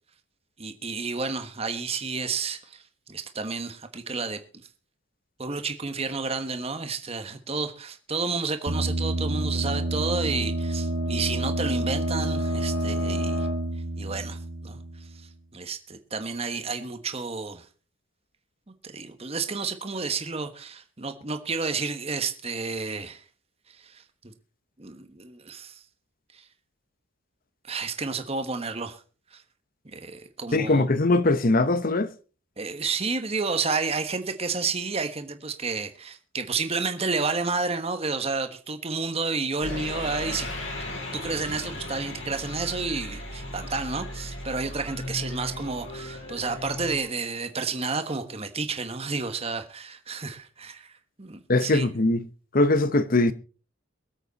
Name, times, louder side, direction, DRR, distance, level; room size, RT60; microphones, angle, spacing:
voice 1, 0.6-4.4 5.4-13.5 14.0-14.8 15.5-17.6 18.8-23.2 23.8-24.3 24.8-25.8 26.3-26.4 27.7-29.0 29.3-29.4 29.8-30.9 32.6-40.5 40.9-50.9 51.2-51.9, right 4 dB, 30° right, 1.2 m, -31 dB
sound 1, 8.7-15.3, right 1 dB, 65° right, 2.1 m, -28 dB
voice 2, 30.5-32.1 51.5-52.3 52.5-53.3, left 2 dB, 45° left, 0.9 m, -21 dB
sound 2, 39.6-47.0, left 1 dB, 70° left, 5.5 m, -36 dB
23.0 x 8.1 x 4.1 m
head